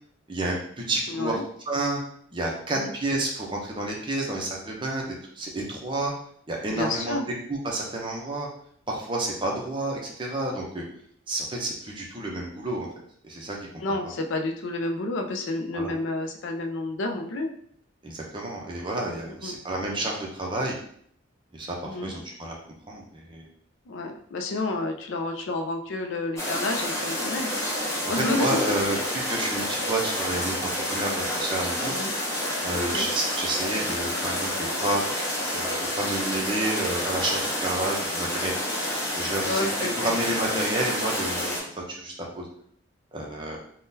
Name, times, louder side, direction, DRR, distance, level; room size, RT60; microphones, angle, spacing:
voice 1, 0.3-1.4 1.7-2.0 2.3-6.1 6.5-7.2 7.5-8.5 8.9-10.8 11.3-12.9 13.2-13.6 15.7-15.9 18.0-20.8 21.5-21.8 22.0-22.6 22.9-23.5 28.3-29.0 29.3-31.9 32.6-35.0 35.5-38.5 39.1-42.5 43.1-43.6, right 2 dB, 25° right, -2 dB, 0.6 m, -30 dB
voice 2, 1.1-1.4 2.7-2.9 6.7-7.3 13.8-17.5 19.3-19.5 21.8-22.1 23.9-27.5 28.1-28.8 31.1-31.2 31.9-32.1 32.7-33.1 39.4-40.1, left 2 dB, 70° left, 4 dB, 0.4 m, -30 dB
sound 1, 26.4-41.6, left 1 dB, 15° left, 0.7 m, -29 dB
3.6 x 2.2 x 2.6 m, 0.64 s
head